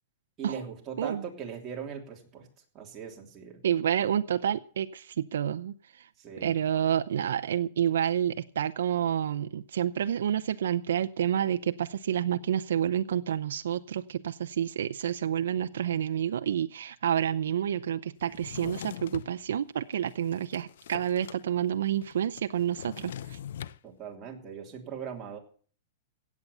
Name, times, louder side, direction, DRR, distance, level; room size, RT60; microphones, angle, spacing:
voice 1, 0.4-2.5 2.7-3.6 6.2-6.6 23.8-25.4, right 7 dB, 20° right, 0 dB, 3.0 m, -40 dB
voice 2, 3.6-6.1 6.4-23.4, right 9 dB, 85° right, 9 dB, 0.6 m, -29 dB
Drawer open or close, 18.3-19.3 19.9-21.4 21.7-21.8 22.0-23.8, left 10 dB, 70° left, 0.7 m, -42 dB
16.5 x 8.6 x 6.7 m, 0.44 s
supercardioid pair, 160°, 0 cm